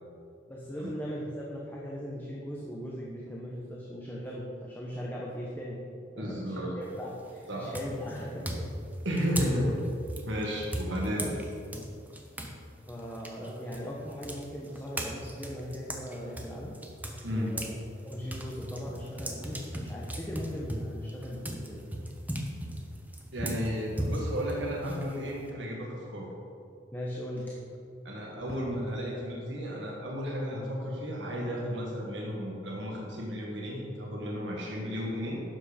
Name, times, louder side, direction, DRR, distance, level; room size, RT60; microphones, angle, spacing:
voice 1, 0.5-5.9 6.1-8.7 11.2-11.4 12.9-16.8 17.3-21.9 26.9-27.6, equal, 10° left, -4 dB, 1.2 m, -39 dB
voice 2, 6.2-6.8 7.5-7.7 9.0-9.9 10.3-11.3 17.2-17.6 23.3-26.3 28.0-35.4, equal, 75° right, -2 dB, 1.8 m, -33 dB
sound 1, 6.8-7.2 7.7-12.6 12.9-17.8 18.1-25.5, right 1 dB, 10° right, 1.0 m, -37 dB
12.0 x 7.7 x 5.2 m, 2.6 s
head